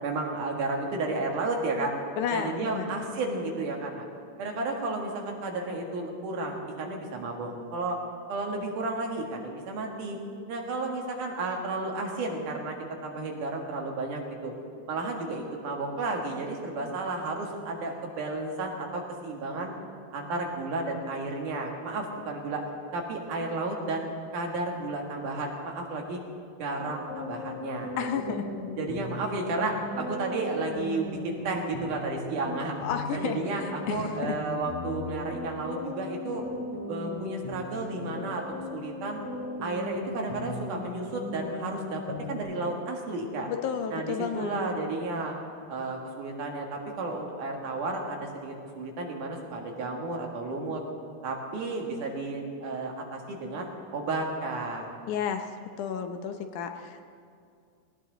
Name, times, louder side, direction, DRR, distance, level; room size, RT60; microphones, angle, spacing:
voice 1, 0.0-1.9 2.3-4.0 4.4-8.0 8.3-10.2 10.5-12.8 13.0-14.5 14.9-19.7 20.1-22.6 22.9-24.1 24.3-26.2 26.6-28.0 28.8-32.8 33.1-36.4 36.9-38.4 38.7-39.2 39.6-42.0 42.3-43.5 43.9-45.3 45.7-50.8 51.2-54.9, right 2 dB, 75° right, 1 dB, 3.3 m, -32 dB
voice 2, 2.2-2.9 28.0-28.5 32.8-34.4 43.5-44.6 55.1-55.5 55.8-57.0, left 8 dB, 75° left, 6 dB, 2.3 m, -32 dB
sound 1, 26.8-42.4, left 1 dB, 35° left, 4.6 m, -38 dB
18.5 x 18.5 x 4.0 m, 2.3 s
omnidirectional pair, 3.6 m